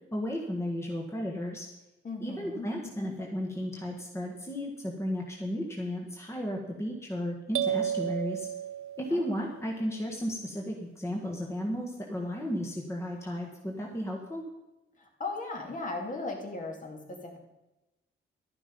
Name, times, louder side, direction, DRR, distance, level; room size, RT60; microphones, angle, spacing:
voice 1, 0.1-1.7 2.2-8.5 9.0-14.5, equal, 15° left, 0 dB, 1.5 m, -34 dB
voice 2, 2.0-3.2 9.1-9.5 15.0-17.4, left 3 dB, 40° left, 2 dB, 2.4 m, -38 dB
sound 1, 7.5-9.4, right 9 dB, 85° right, 0.8 m, -32 dB
12.0 x 10.5 x 5.3 m, 1.0 s
wide cardioid pair, 140°, 21 cm